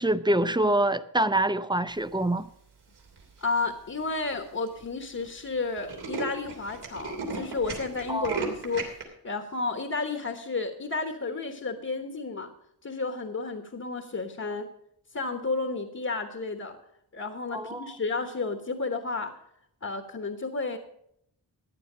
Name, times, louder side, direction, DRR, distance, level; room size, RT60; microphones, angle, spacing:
voice 1, 0.0-2.4 8.1-8.4 17.5-17.9, right 1 dB, 10° right, 0.5 m, -25 dB
Tools, 3.0-3.4 4.0-4.1 4.3-4.4 4.7-4.9 5.2-5.3 5.5-9.0, right 4 dB, 85° right, 3.2 m, -35 dB
voice 2, 3.4-8.8 9.2-12.5 12.8-14.7 15.1-16.8 17.1-19.3 19.8-20.8, left 3 dB, 40° left, 1.2 m, -32 dB
14.5 x 9.9 x 5.1 m
wide cardioid pair, 120°, 39 cm